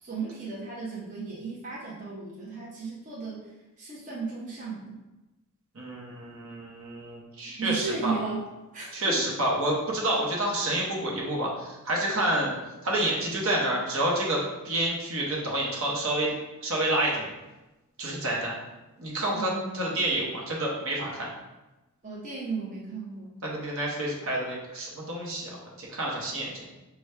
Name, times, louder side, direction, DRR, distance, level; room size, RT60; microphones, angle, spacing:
voice 1, 0.0-3.4 3.8-5.0 7.4-8.4 8.7-9.2 19.3-19.9 22.0-23.4, right 4 dB, 35° right, -6 dB, 0.8 m, -35 dB
voice 2, 5.7-8.1 8.9-12.5 12.8-16.4 16.6-17.3 18.0-18.5 19.0-21.3 23.4-25.5 25.8-26.6, right 1 dB, 65° right, -3 dB, 1.0 m, -29 dB
5.9 x 2.3 x 3.3 m, 1.0 s
head